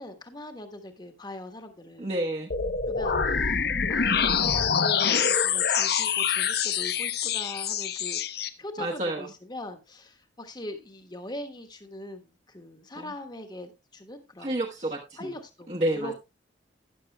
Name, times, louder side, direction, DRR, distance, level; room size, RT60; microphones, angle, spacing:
voice 1, 0.0-2.1 2.9-3.6 3.9-14.5 15.2-16.1, left 1 dB, 25° left, 7 dB, 1.3 m, -41 dB
voice 2, 2.0-2.5 8.8-9.3 13.0-13.1 14.4-15.3 15.7-16.1, right 1 dB, 35° right, -1 dB, 1.0 m, -30 dB
sound 1, 2.5-8.5, left 6 dB, 60° left, 0.8 m, -25 dB
13.0 x 10.0 x 2.2 m, 0.25 s
head